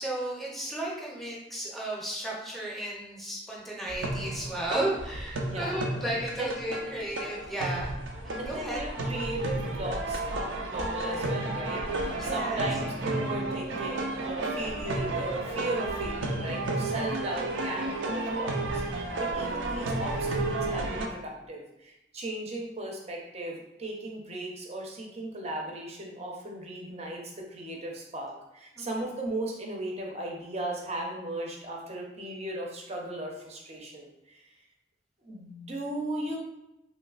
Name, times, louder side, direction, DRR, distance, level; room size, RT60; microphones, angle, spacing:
voice 1, 0.0-7.9 8.2-8.8 12.2-12.7 28.8-29.0, right 1 dB, ahead, -4 dB, 0.6 m, -34 dB
sound 1, 3.9-21.1, right 2 dB, 85° right, 0.4 m, -32 dB
voice 2, 5.4-5.8 6.4-6.5 8.4-27.2 27.5-34.4 35.2-36.4, right 1 dB, 35° right, 0 dB, 0.6 m, -37 dB
3.1 x 3.1 x 2.4 m, 0.88 s
head